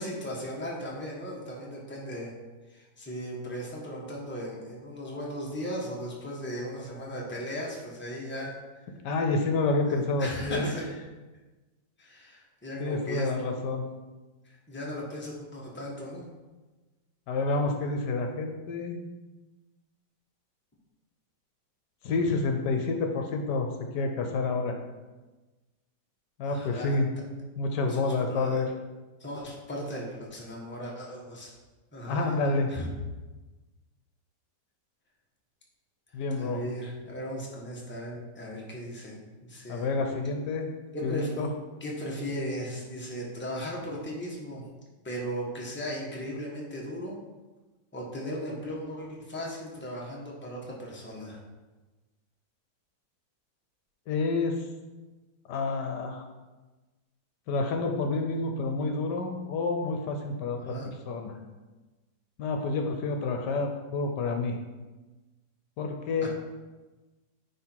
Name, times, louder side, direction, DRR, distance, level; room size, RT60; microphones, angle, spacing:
voice 1, 0.0-2.3 2.7-8.6 9.9-10.9 12.0-13.3 14.7-16.2 26.4-27.0 27.9-28.6 29.2-31.5 31.9-32.4 32.7-32.9 36.3-39.8 40.9-41.3 41.8-44.7 45.0-47.2 47.9-51.4 60.6-60.9 66.2-66.3, equal, 5° left, -3 dB, 1.2 m, -37 dB
voice 2, 9.0-10.7 12.8-13.8 17.3-19.0 22.0-23.7 23.9-24.8 26.4-27.1 27.6-28.7 32.1-32.7 36.1-36.6 39.7-40.7 41.0-41.5 54.1-54.6 55.5-56.2 57.5-60.7 61.1-61.4 62.4-64.6 65.8-66.3, left 3 dB, 75° left, 4 dB, 1.3 m, -28 dB
9.6 x 3.6 x 4.5 m, 1.2 s
omnidirectional pair, 1.9 m